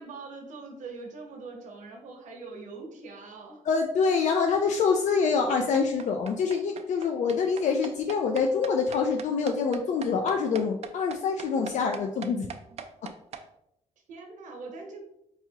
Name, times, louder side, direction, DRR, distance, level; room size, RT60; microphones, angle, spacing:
voice 1, 0.0-3.6 14.1-15.0, right 3 dB, 90° right, 2 dB, 0.9 m, -42 dB
voice 2, 3.7-12.5, left 5 dB, 75° left, 3 dB, 0.4 m, -25 dB
sound 1, 5.5-13.4, right 7 dB, 60° right, 0.4 m, -40 dB
4.6 x 2.8 x 2.7 m, 0.78 s
cardioid pair, 115°, 12 cm